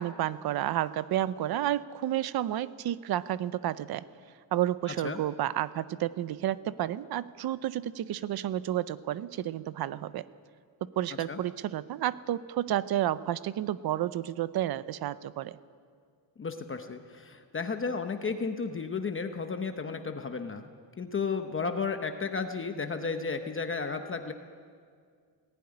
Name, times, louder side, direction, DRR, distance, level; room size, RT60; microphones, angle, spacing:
voice 1, 0.0-4.1 4.5-10.2 10.8-15.5, right 12 dB, 55° right, 16 dB, 0.7 m, -31 dB
voice 2, 16.4-20.7 21.0-24.3, left 5 dB, 25° left, 6 dB, 0.9 m, -33 dB
18.5 x 16.0 x 9.8 m, 2.1 s
cardioid pair, 150°, 46 cm